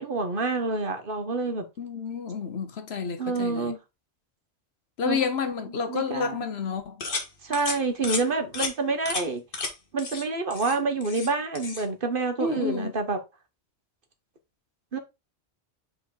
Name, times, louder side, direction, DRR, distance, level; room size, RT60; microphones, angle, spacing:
voice 1, 0.0-1.7 3.2-3.8 5.0-5.2 5.9-6.5 7.4-9.4 9.9-13.2 14.9-15.0, right 3 dB, 55° right, 1.3 m, -28 dB
voice 2, 1.8-3.7 5.0-7.0 12.4-12.9, left 5 dB, 70° left, 1.2 m, -30 dB
sound 1, 7.0-7.3 7.5-7.8 8.0-8.2 8.5-8.7 9.1-9.2 9.5-9.7 10.0-10.2 10.5-11.3 11.6-11.8, left 3 dB, 55° left, 1.6 m, -32 dB
5.1 x 4.9 x 3.8 m
omnidirectional pair, 1.1 m